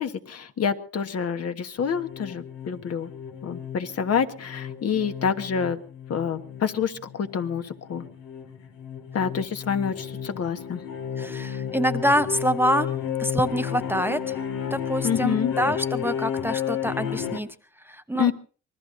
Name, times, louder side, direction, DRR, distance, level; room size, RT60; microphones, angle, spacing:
voice 1, 0.0-3.1 3.4-5.8 6.1-8.0 9.1-10.8 15.0-15.5 18.2-18.3, left 7 dB, 55° left, 8 dB, 1.4 m, -27 dB
sound 1, 1.8-17.4, left 8 dB, 85° left, 2.0 m, -32 dB
voice 2, 11.2-12.9 13.2-14.4 14.7-17.5 17.8-18.3, equal, 5° right, 10 dB, 0.8 m, -26 dB
26.5 x 20.0 x 2.6 m, 0.39 s
cardioid pair, 90°, 30 cm